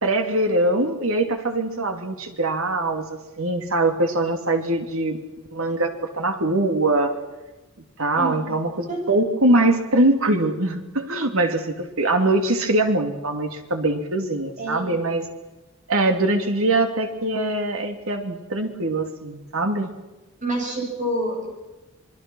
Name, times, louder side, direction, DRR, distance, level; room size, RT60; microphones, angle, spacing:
voice 1, 0.0-5.2 5.5-7.1 8.0-15.3 15.9-19.9, right 2 dB, 80° right, 6 dB, 2.8 m, -22 dB
voice 2, 8.1-8.5 8.9-9.0 14.6-14.9 20.4-21.5, right 1 dB, 35° right, 1 dB, 8.0 m, -27 dB
26.5 x 22.5 x 6.3 m, 1.1 s
head